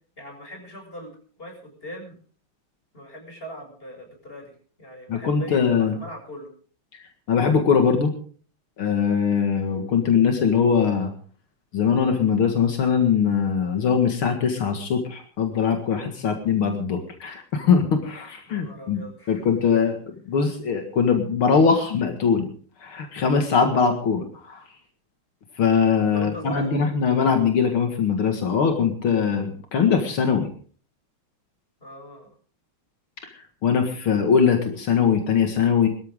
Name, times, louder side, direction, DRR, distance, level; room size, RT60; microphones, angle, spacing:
voice 1, 0.2-1.1 1.4-2.2 2.9-6.5 18.5-19.5 26.1-26.8 31.8-32.3, equal, 25° left, 2 dB, 7.4 m, -40 dB
voice 2, 5.1-6.0 6.9-7.0 7.3-8.1 8.8-11.1 11.7-19.0 19.3-20.0 20.3-22.5 22.8-24.6 25.6-30.5 33.6-35.9, left 6 dB, 80° left, 5 dB, 2.7 m, -21 dB
24.5 x 13.5 x 3.7 m, 0.43 s
omnidirectional pair, 2.3 m